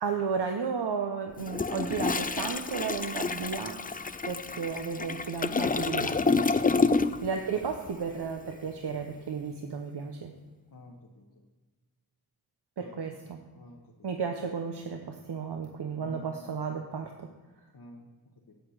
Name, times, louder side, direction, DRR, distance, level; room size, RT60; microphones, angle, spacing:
voice 1, 0.0-3.8 4.2-6.1 7.2-10.3 12.8-13.4 14.0-17.3, right 6 dB, 80° right, 4 dB, 0.9 m, -33 dB
Toilet flush, 1.4-7.4 7.6-7.9, left 4 dB, 20° left, 0.4 m, -28 dB
voice 2, 6.8-7.1 10.7-11.3 12.8-13.0 13.5-13.9 16.0-16.5 17.7-18.1 18.5-18.6, left 1 dB, 55° left, -2 dB, 1.2 m, -49 dB
8.1 x 8.1 x 6.5 m, 1.3 s
wide cardioid pair, 105°, 39 cm